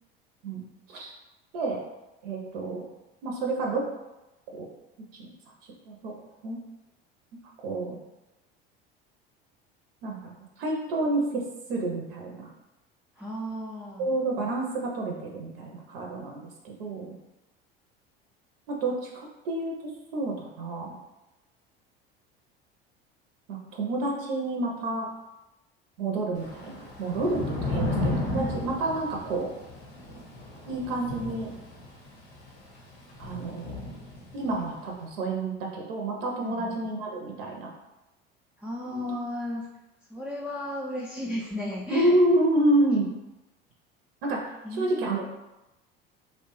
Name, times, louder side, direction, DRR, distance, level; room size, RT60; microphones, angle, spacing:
voice 1, 2.2-2.9 3.2-3.8 4.5-4.7 5.2-5.3 5.9-6.1 6.4-6.6 7.6-8.0 10.0-10.3 10.6-11.4 11.7-12.5 14.0-17.1 18.7-19.7 20.1-20.9 23.5-25.1 26.0-29.5 30.7-31.5 33.2-33.9 34.3-37.7 38.8-39.2 41.9-43.1 44.2-44.4 44.7-45.3, right 2 dB, 70° right, 0 dB, 0.6 m, -29 dB
voice 2, 13.2-14.1 27.6-28.5 36.4-36.7 38.6-39.7 40.1-42.1 44.6-45.3, equal, 5° right, -4 dB, 0.3 m, -35 dB
Thunder / Rain, 26.4-34.7, left 2 dB, 80° left, 0.8 m, -34 dB
2.9 x 2.1 x 2.9 m, 0.99 s
hypercardioid pair, 70°, 30 cm